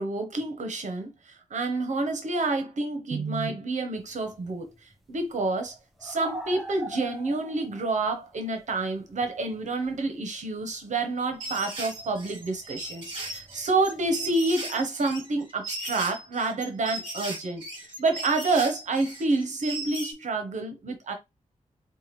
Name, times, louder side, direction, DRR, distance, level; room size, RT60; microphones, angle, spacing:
voice 1, 0.0-21.1, right 3 dB, 65° right, 0.8 m, -28 dB
sound 1, 4.0-10.1 10.3-14.3, equal, ahead, 0.6 m, -44 dB
sound 2, 11.4-20.1, right 2 dB, 35° right, 2.2 m, -37 dB
4.7 x 2.2 x 3.0 m
wide cardioid pair, 125°, 13 cm